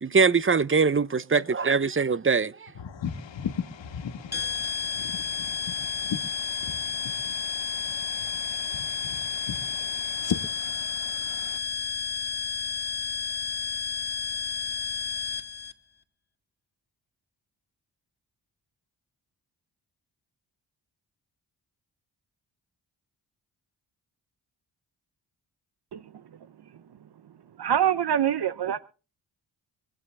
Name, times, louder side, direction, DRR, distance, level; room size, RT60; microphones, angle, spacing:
voice 1, 0.0-2.7, right 5 dB, 30° right, 0.8 m, -22 dB
voice 2, 2.8-11.6, left 8 dB, 80° left, 1.8 m, -37 dB
sound 1, 4.3-15.7, left 6 dB, 20° left, 1.9 m, -31 dB
voice 3, 27.6-28.8, right 9 dB, 60° right, 1.0 m, -25 dB
25.0 x 9.1 x 3.4 m
cardioid pair, 50°, 44 cm